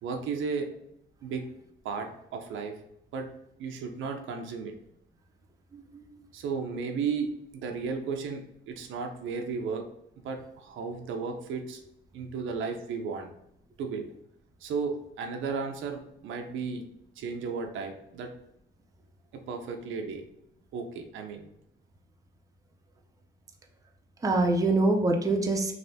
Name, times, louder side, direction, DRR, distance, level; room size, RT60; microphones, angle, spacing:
voice 1, 0.0-0.7 1.2-1.4 1.8-2.7 3.1-3.3 3.6-4.7 6.3-9.9 10.2-11.8 12.1-13.3 13.8-14.1 14.6-16.8 17.2-18.3 19.3-20.2 20.7-21.4, right 5 dB, 80° right, 5 dB, 0.5 m, -34 dB
voice 2, 5.7-6.2 24.2-25.7, right 2 dB, 15° right, 2 dB, 0.5 m, -25 dB
3.2 x 2.6 x 2.7 m, 0.77 s
cardioid pair, 90°, 20 cm